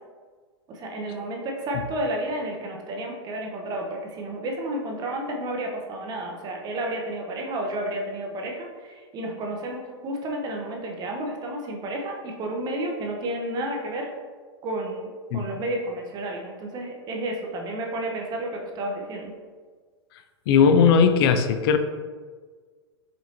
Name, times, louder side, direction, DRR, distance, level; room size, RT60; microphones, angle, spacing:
voice 1, 0.7-14.1 14.6-15.1 15.3-19.3, right 1 dB, 30° right, 1 dB, 0.6 m, -31 dB
voice 2, 20.5-21.8, left 6 dB, 55° left, 8 dB, 0.4 m, -18 dB
5.1 x 2.6 x 2.8 m, 1.5 s
hypercardioid pair, 125°, 15 cm